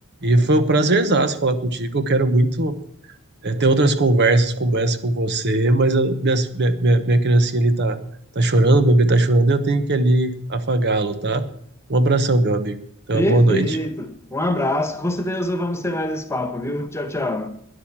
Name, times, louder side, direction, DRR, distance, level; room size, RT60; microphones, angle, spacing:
voice 1, 0.2-2.7 3.4-8.0 8.3-11.4 11.9-12.8 13.1-13.8, right 2 dB, 55° right, 1.1 m, -18 dB
voice 2, 13.1-17.5, left 1 dB, 15° left, 1.4 m, -24 dB
12.5 x 10.5 x 7.4 m
head